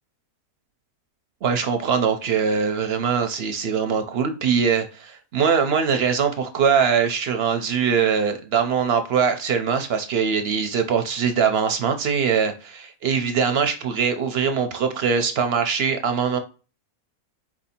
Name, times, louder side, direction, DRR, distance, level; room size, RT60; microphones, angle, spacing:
voice 1, 1.4-16.4, right 6 dB, 60° right, 7 dB, 0.7 m, -22 dB
4.5 x 2.7 x 4.2 m, 0.34 s
omnidirectional pair, 1.5 m